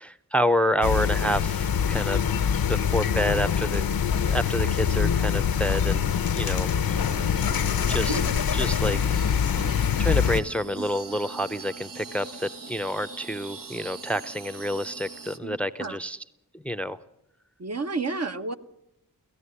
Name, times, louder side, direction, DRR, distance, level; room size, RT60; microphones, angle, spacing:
voice 1, 0.0-2.2 2.7-3.9 4.2-6.7 7.9-8.2 8.5-9.6 10.0-16.2 16.5-17.0, equal, 5° left, 12 dB, 0.7 m, -28 dB
sound 1, 0.8-10.4, left 7 dB, 85° left, 0.8 m, -24 dB
sound 2, 6.9-15.4, right 2 dB, 70° right, 1.3 m, -41 dB
voice 2, 9.6-9.9 15.4-16.0 17.6-18.5, right 3 dB, 45° right, 8 dB, 1.0 m, -32 dB
17.0 x 15.5 x 9.8 m, 0.87 s
cardioid pair, 50°, 35 cm